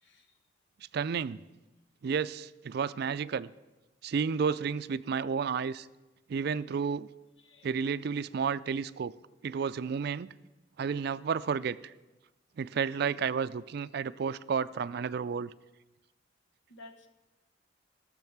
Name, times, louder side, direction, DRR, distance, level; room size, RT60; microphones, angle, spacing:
voice 1, 0.0-0.4 7.4-7.8 16.7-17.1, left 2 dB, 80° left, 7 dB, 1.2 m, -53 dB
voice 2, 0.9-1.4 2.0-3.5 4.0-5.9 6.3-7.1 7.6-9.1 9.4-10.3 10.8-11.8 12.6-15.5, right 6 dB, 60° right, 16 dB, 0.4 m, -31 dB
14.0 x 7.3 x 5.9 m, 1.1 s
head